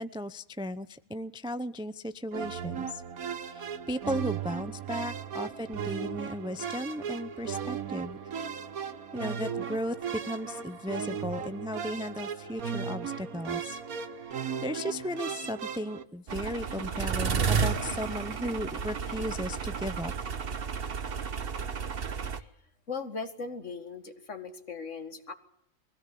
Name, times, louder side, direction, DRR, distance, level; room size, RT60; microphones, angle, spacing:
voice 1, 0.0-3.0 3.5-8.2 9.1-10.0 10.2-13.8 14.3-20.1, equal, 5° right, 13 dB, 0.4 m, -35 dB
sound 1, 2.3-16.0, right 7 dB, 85° right, 1.7 m, -36 dB
sound 2, 16.3-22.4, right 6 dB, 45° right, 1.2 m, -32 dB
voice 2, 22.9-25.3, left 4 dB, 60° left, 7 dB, 2.3 m, -38 dB
23.0 x 16.5 x 8.4 m, 0.74 s
omnidirectional pair, 1.4 m